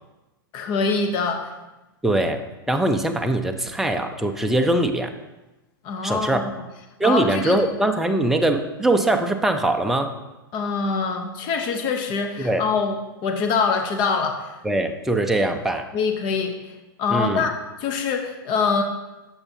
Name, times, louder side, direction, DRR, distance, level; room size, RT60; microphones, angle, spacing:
voice 1, 0.5-1.5 5.8-6.5 7.0-7.6 10.5-14.5 15.9-16.7 17.0-17.5 17.8-18.8, left 5 dB, 40° left, 4 dB, 0.8 m, -24 dB
voice 2, 2.0-5.1 6.0-6.4 7.0-10.1 12.4-12.7 14.6-15.9 17.1-17.5, right 1 dB, 5° right, 5 dB, 0.5 m, -22 dB
8.5 x 7.1 x 2.8 m, 1.1 s
hypercardioid pair, 125°, 12 cm